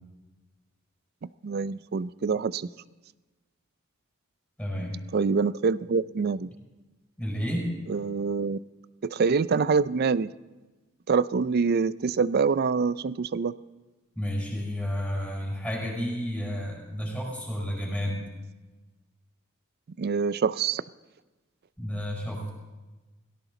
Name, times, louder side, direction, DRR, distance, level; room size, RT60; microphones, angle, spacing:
voice 1, 1.2-2.7 5.1-6.5 7.9-8.6 9.0-10.3 11.1-13.5 20.0-20.8, right 5 dB, 45° right, 18 dB, 0.4 m, -25 dB
voice 2, 4.6-5.0 7.2-7.7 14.1-18.3 21.8-22.5, equal, 5° left, -4 dB, 5.6 m, -31 dB
18.0 x 16.5 x 4.0 m, 1.2 s
head